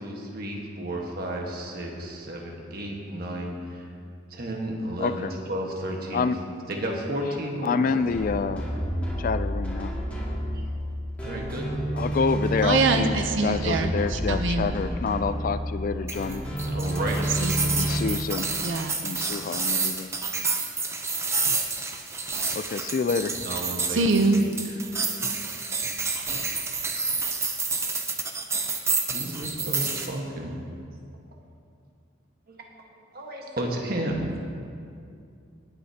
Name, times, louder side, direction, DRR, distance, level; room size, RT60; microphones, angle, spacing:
voice 1, 0.0-3.9 4.3-6.3 6.7-8.0 11.2-11.7 16.7-17.4 23.4-24.0 24.4-24.5 29.1-30.5 32.5-32.6 33.1-34.3, right 1 dB, 50° right, 0 dB, 1.4 m, -32 dB
voice 2, 5.0-5.3 6.1-6.4 7.6-8.7 9.2-9.9 12.0-16.4 17.7-18.5 19.0-20.1 22.5-23.3, left 5 dB, 45° left, 12 dB, 0.3 m, -27 dB
sound 1, 8.1-18.0, equal, 5° left, 2.2 m, -30 dB
voice 3, 12.6-14.7 17.4-18.3 18.6-19.0 23.9-24.4, right 3 dB, 65° right, 6 dB, 0.7 m, -25 dB
sound 2, 16.1-30.1, right 4 dB, 15° right, 0.6 m, -29 dB
19.0 x 9.5 x 2.9 m, 2.4 s
head